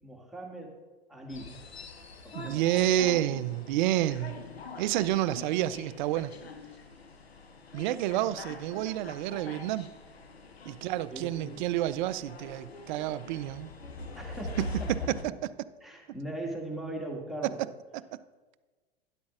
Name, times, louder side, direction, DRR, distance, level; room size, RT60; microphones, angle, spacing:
voice 1, 0.0-0.8 1.1-1.6 2.2-2.7 11.1-11.6 14.2-15.3 15.8-17.6, right 1 dB, ahead, -2 dB, 1.9 m, -40 dB
sound 1, 1.3-15.2, left 2 dB, 90° left, 0.9 m, -43 dB
voice 2, 2.3-4.4 4.8-6.3 7.7-9.9 10.7-13.7 14.6-15.3, right 13 dB, 50° right, 16 dB, 0.5 m, -29 dB
12.5 x 10.5 x 2.5 m, 1.3 s
figure-of-eight pair, 95°, 30 cm